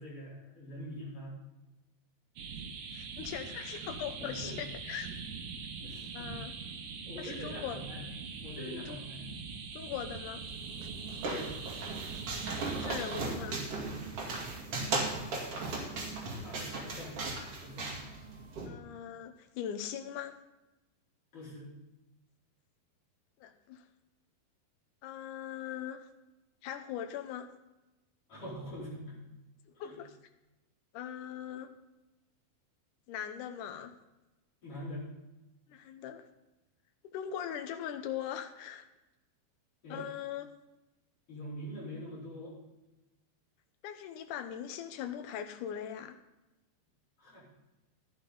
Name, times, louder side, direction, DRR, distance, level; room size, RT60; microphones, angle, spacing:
voice 1, 0.0-1.4 4.2-4.6 5.8-6.4 7.1-8.0 8.4-9.2 11.2-11.5 16.4-17.2 17.6-17.9 21.3-21.7 28.3-29.2 29.8-30.0 34.6-35.1 39.8-40.1 41.3-42.6 47.2-47.5, equal, 35° left, -7 dB, 5.5 m, -43 dB
sound 1, 2.4-13.2, right 5 dB, 65° right, 2.3 m, -42 dB
voice 2, 2.9-5.1 6.1-6.5 7.2-7.8 8.6-9.0 9.7-10.4 12.6-13.6 18.6-20.4 23.4-23.8 25.0-26.1 26.6-27.5 29.8-30.1 30.9-31.7 33.1-33.9 35.7-36.3 37.0-38.8 39.9-40.5 43.8-46.2, left 9 dB, 70° left, 7 dB, 2.0 m, -40 dB
sound 2, 10.2-10.5 10.8-13.2 13.5-15.3, right 9 dB, 90° right, 2.7 m, -51 dB
sound 3, 10.5-18.7, right 3 dB, 45° right, 2.7 m, -37 dB
12.5 x 11.5 x 3.9 m, 1.0 s
omnidirectional pair, 4.5 m